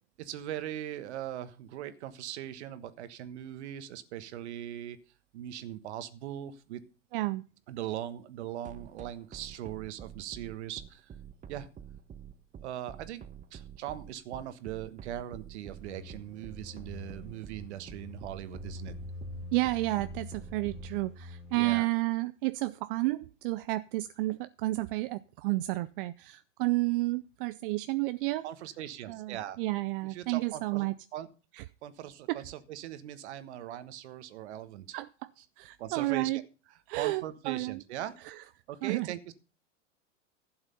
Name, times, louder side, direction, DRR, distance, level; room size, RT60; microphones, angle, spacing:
voice 1, 0.2-5.0 5.3-6.8 7.7-11.1 11.5-11.7 12.6-13.2 13.5-19.0 21.5-21.9 28.4-29.6 30.1-31.3 31.6-34.9 35.8-36.4 37.0-39.3, right 12 dB, 65° right, 12 dB, 1.3 m, -40 dB
voice 2, 7.1-7.4 19.5-28.5 29.1-30.9 31.5-31.6 32.3-32.4 34.9-35.1 35.6-36.4 36.9-37.8 38.2-38.4 38.8-39.1, right 20 dB, 50° right, 14 dB, 0.5 m, -31 dB
sound 1, 8.6-20.9, right 9 dB, 20° right, 1.0 m, -47 dB
sound 2, 15.8-21.8, left 2 dB, 5° right, 3.7 m, -45 dB
11.5 x 7.9 x 5.4 m, 0.34 s
hypercardioid pair, 100°, 37 cm